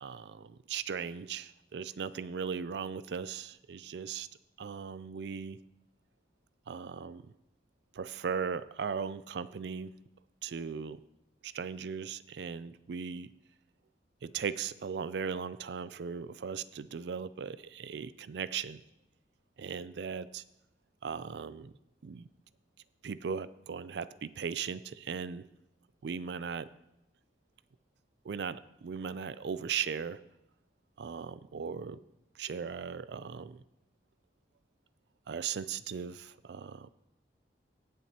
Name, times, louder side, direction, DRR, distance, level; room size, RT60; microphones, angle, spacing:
voice 1, 0.0-4.3 4.6-5.6 6.7-7.3 7.9-9.9 10.4-11.0 11.4-13.3 14.2-18.8 19.6-20.4 21.0-21.7 22.0-22.3 23.0-25.5 26.0-26.7 28.2-30.2 31.0-32.0 32.4-33.6 35.3-36.9, right 6 dB, 75° right, 17 dB, 0.4 m, -38 dB
18.0 x 7.4 x 2.9 m, 0.86 s
head